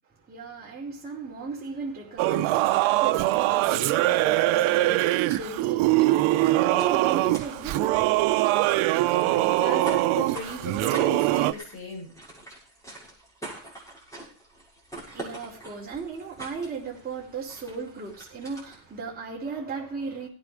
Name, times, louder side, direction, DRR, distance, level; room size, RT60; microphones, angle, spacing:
voice 1, 0.1-8.3 14.9-20.3, right 4 dB, 20° right, 4.9 m, -36 dB
Singing / Musical instrument, 2.2-11.5, right 17 dB, 90° right, 0.8 m, -23 dB
sound 1, 4.1-19.0, right 2 dB, 5° left, 6.7 m, -46 dB
voice 2, 9.0-12.1, left 3 dB, 30° left, 7.2 m, -37 dB
17.5 x 9.5 x 5.1 m
cardioid pair, 150°, 47 cm